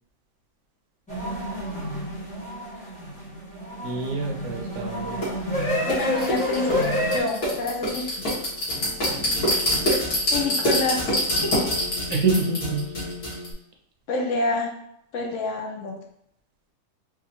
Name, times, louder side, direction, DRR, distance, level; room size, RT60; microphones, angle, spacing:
sound 1, 1.1-7.2, equal, 5° left, 1.2 m, -29 dB
voice 1, 3.8-5.3 12.1-12.9, right 4 dB, 85° right, 2 dB, 1.3 m, -26 dB
sound 2, 5.2-5.3 5.9-13.5, equal, 85° left, 2.1 m, -25 dB
voice 2, 5.8-8.3 9.9-11.1 11.4-11.6 14.1-14.8 15.1-16.0, left 3 dB, 65° left, 1 dB, 0.9 m, -28 dB
4.9 x 2.4 x 2.8 m, 0.74 s
omnidirectional pair, 1.5 m